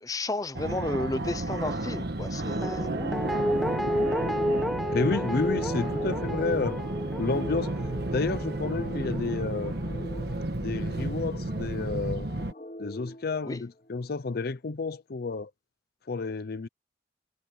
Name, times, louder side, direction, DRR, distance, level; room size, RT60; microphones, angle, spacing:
voice 1, 0.0-2.9 13.4-13.6, left 2 dB, 20° left, 0.7 m, -32 dB
Fixed-wing aircraft airplane, 0.5-12.5, right 2 dB, 60° right, 1.4 m, -32 dB
Guitar, 2.6-9.6 10.0-10.1, equal, ahead, 1.1 m, -32 dB
sound 1, 2.7-14.1, equal, 40° left, 1.3 m, -44 dB
voice 2, 4.9-6.8 7.2-7.7 8.1-9.8 10.6-12.3 12.8-15.5 16.1-16.7, left 4 dB, 55° left, 0.6 m, -30 dB
head